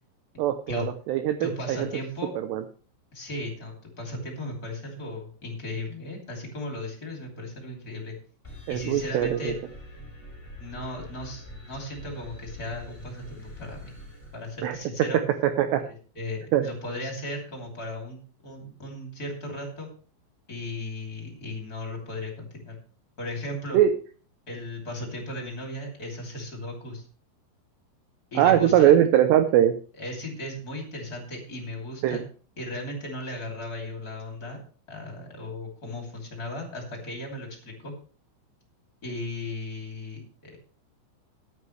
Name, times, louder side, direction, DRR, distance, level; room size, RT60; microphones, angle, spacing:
voice 1, 0.4-1.9 2.4-2.6 8.7-9.5 14.6-14.8 15.4-15.8 16.5-16.7 23.7-23.9 28.4-29.8 32.0-32.2, right 11 dB, 85° right, 8 dB, 2.4 m, -21 dB
voice 2, 1.4-2.3 3.1-8.2 8.7-9.6 10.6-13.9 14.3-15.2 15.9-18.2 18.4-19.9 20.5-22.7 23.2-23.8 24.5-27.1 28.3-28.9 30.0-32.2 32.6-34.6 34.9-37.9 39.0-40.6, left 1 dB, 25° left, 0 dB, 2.4 m, -36 dB
sound 1, 8.4-15.0, left 1 dB, 5° left, 3.5 m, -45 dB
14.0 x 11.0 x 3.2 m, 0.40 s
omnidirectional pair, 5.8 m